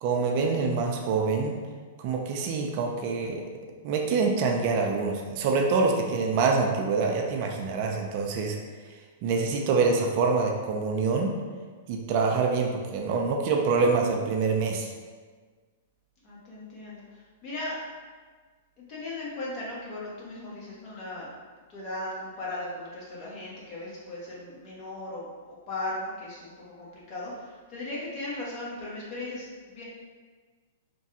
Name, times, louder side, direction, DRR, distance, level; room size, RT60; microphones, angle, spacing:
voice 1, 0.0-1.6 2.0-3.4 3.8-8.6 9.2-11.4 11.9-14.9, right 4 dB, 50° right, 2 dB, 0.4 m, -25 dB
voice 2, 16.2-17.8 18.8-21.3 21.7-29.8, left 2 dB, 40° left, -6 dB, 1.1 m, -37 dB
3.2 x 2.2 x 2.8 m, 1.5 s
hypercardioid pair, 115°, 0 cm